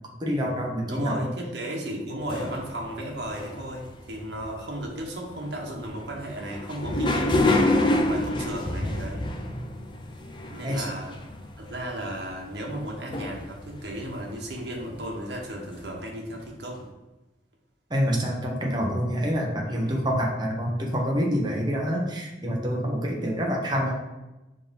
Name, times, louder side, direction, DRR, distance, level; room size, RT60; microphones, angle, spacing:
voice 1, 0.2-1.2 10.6-10.8 17.9-23.9, equal, 25° right, -1 dB, 1.0 m, -26 dB
voice 2, 0.9-9.3 10.5-11.1 11.6-16.9 19.7-20.0, right 1 dB, 60° right, -1 dB, 1.3 m, -35 dB
sound 1, 2.3-4.9 5.3-15.0 15.5-15.6 15.8-15.9, left 2 dB, 25° left, 0.6 m, -28 dB
4.9 x 3.7 x 5.2 m, 1.0 s
head